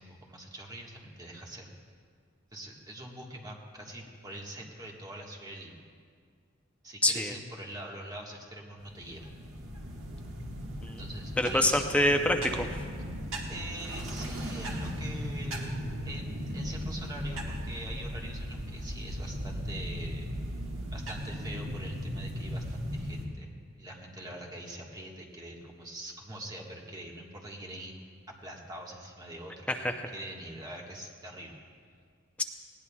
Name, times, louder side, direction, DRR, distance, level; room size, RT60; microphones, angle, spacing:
voice 1, 0.0-1.7 2.5-5.8 6.8-9.3 11.0-11.9 13.5-15.7 16.0-20.3 20.9-23.5 23.8-28.0 28.4-31.6, right 1 dB, 20° right, -2 dB, 1.5 m, -44 dB
voice 2, 7.0-7.3 10.8-11.1 11.4-12.7 29.7-29.9, left 1 dB, 5° left, 5 dB, 0.5 m, -26 dB
sound 1, 8.8-23.3, equal, 75° right, 1.6 m, -37 dB
19.5 x 17.0 x 2.3 m, 2.1 s
head